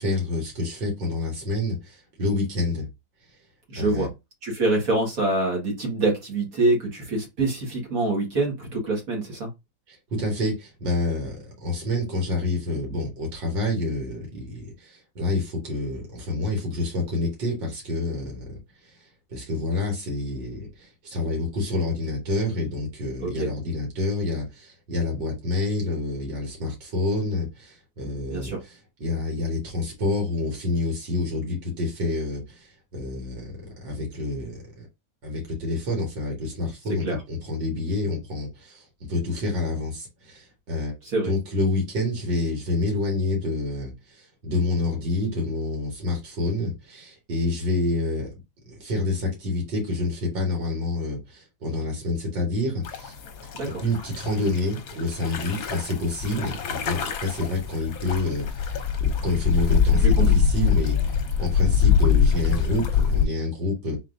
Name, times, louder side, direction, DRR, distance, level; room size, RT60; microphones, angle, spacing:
voice 1, 0.0-2.9 3.8-4.1 9.9-33.5 33.8-34.9 35.2-40.9 41.2-48.3 48.7-53.2 53.4-64.0, left 2 dB, 85° right, 2.5 m, -28 dB
voice 2, 3.7-4.1 4.4-9.5 23.2-23.5 28.3-28.6 37.0-37.2 41.0-41.3 53.6-53.8 60.0-60.3, right 2 dB, 50° right, 2.2 m, -25 dB
sound 1, 52.8-63.3, left 6 dB, 60° left, 1.1 m, -23 dB
4.2 x 3.9 x 2.6 m
omnidirectional pair, 2.0 m